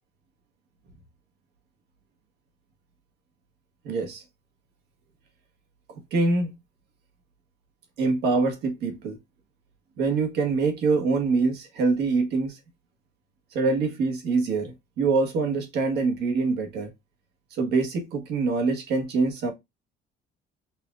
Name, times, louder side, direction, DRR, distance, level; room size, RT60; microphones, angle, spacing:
voice 1, 3.8-4.2 5.9-6.5 8.0-9.2 10.0-12.6 13.5-16.9 17.5-19.5, right 4 dB, 80° right, 1.4 m, -25 dB
5.7 x 2.6 x 2.3 m
cardioid pair, 110°, 17 cm